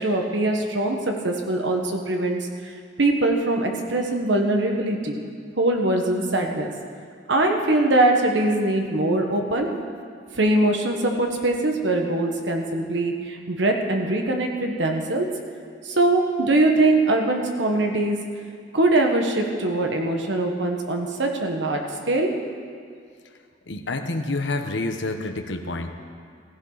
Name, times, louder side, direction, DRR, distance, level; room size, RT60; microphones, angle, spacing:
voice 1, 0.0-2.5 3.0-5.2 5.6-6.7 7.3-9.7 10.3-15.3 15.8-18.2 18.7-22.3, right 2 dB, 75° right, 2 dB, 1.3 m, -22 dB
voice 2, 23.7-25.9, left 2 dB, 80° left, 5 dB, 1.0 m, -28 dB
16.0 x 15.5 x 4.0 m, 2.2 s
head